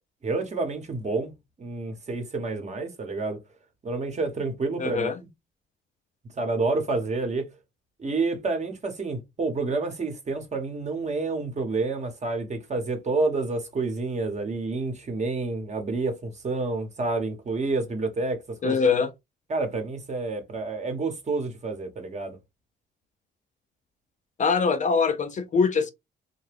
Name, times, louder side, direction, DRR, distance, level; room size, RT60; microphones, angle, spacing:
voice 1, 0.2-3.4 3.8-5.3 6.4-7.5 8.0-18.8 19.5-22.4, right 3 dB, 35° right, 1.0 m, -29 dB
voice 2, 4.8-5.1 18.6-19.1 24.4-25.9, left 5 dB, 40° left, 0.5 m, -23 dB
2.8 x 2.2 x 3.3 m
cardioid pair, 90°, 20 cm